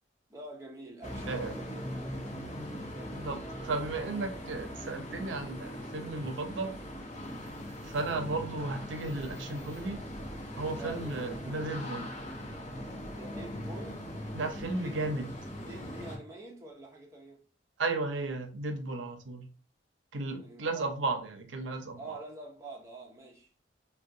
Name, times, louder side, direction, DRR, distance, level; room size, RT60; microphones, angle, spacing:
voice 1, 0.3-1.8 2.6-3.8 10.8-11.1 13.1-14.1 14.8-15.0 15.7-17.4 20.4-20.9 21.9-23.5, right 2 dB, 15° right, 0.6 m, -46 dB
sound 1, 1.0-16.2, equal, 40° left, 0.8 m, -40 dB
voice 2, 3.6-6.7 7.8-10.0 10.6-12.1 14.3-15.3 17.8-19.5 20.1-22.2, right 3 dB, 80° right, 0.6 m, -34 dB
3.5 x 2.2 x 2.6 m
head